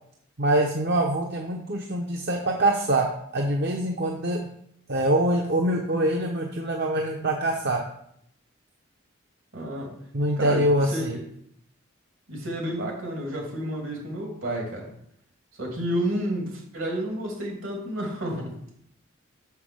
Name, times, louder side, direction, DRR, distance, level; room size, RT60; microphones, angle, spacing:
voice 1, 0.4-3.1 3.3-4.5 4.9-7.8 10.1-11.2, right 1 dB, 50° right, 1 dB, 0.8 m, -24 dB
voice 2, 9.5-10.0 10.4-11.2 12.3-14.9 15.6-18.6, right 1 dB, 70° right, 0 dB, 2.6 m, -30 dB
6.1 x 5.9 x 6.3 m, 0.71 s
head